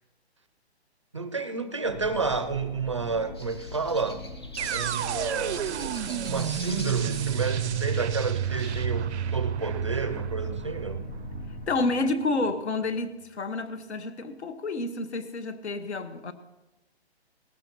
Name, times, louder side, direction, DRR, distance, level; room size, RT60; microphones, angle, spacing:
voice 1, 1.1-4.2 4.7-5.8 6.2-11.0, right 4 dB, 30° right, 0.4 m, -30 dB
sound 1, 1.9-11.7, left 2 dB, 50° left, 1.1 m, -41 dB
sound 2, 3.3-8.9, left 1 dB, 25° left, 0.5 m, -44 dB
sound 3, 4.6-12.5, right 9 dB, 85° right, 0.5 m, -31 dB
voice 2, 11.7-16.3, left 3 dB, 80° left, 1.4 m, -29 dB
18.5 x 15.0 x 2.9 m
hypercardioid pair, 175°, 33 cm